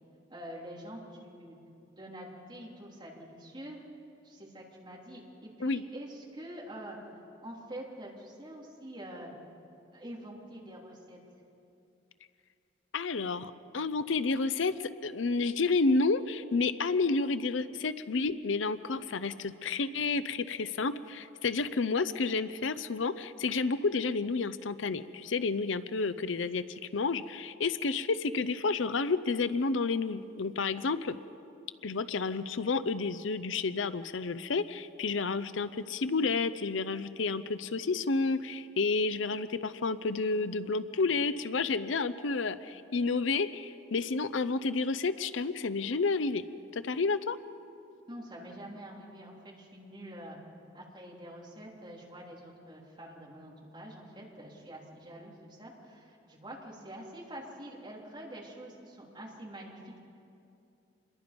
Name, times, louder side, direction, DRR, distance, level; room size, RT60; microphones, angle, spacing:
voice 1, 0.3-1.6 2.0-3.8 4.2-7.0 7.4-9.3 9.9-11.2 48.1-50.4 50.7-60.0, right 1 dB, 25° right, -3 dB, 3.5 m, -46 dB
voice 2, 12.9-26.6 26.9-31.2 31.8-46.4 46.7-47.4, left 4 dB, 75° left, 14 dB, 0.6 m, -30 dB
27.0 x 22.0 x 5.3 m, 2.6 s
head